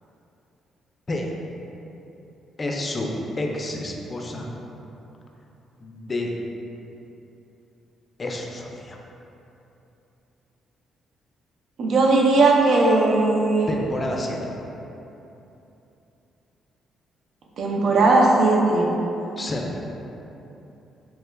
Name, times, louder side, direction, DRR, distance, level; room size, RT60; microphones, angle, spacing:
voice 1, 2.6-3.1 3.4-4.5 5.8-6.3 8.2-9.0 13.7-14.5 19.4-19.8, left 1 dB, 30° left, 0 dB, 0.4 m, -29 dB
voice 2, 11.8-13.7 17.6-18.9, right 3 dB, 65° right, -1 dB, 0.4 m, -18 dB
3.2 x 3.1 x 2.2 m, 3.0 s
cardioid pair, 90°, 0 cm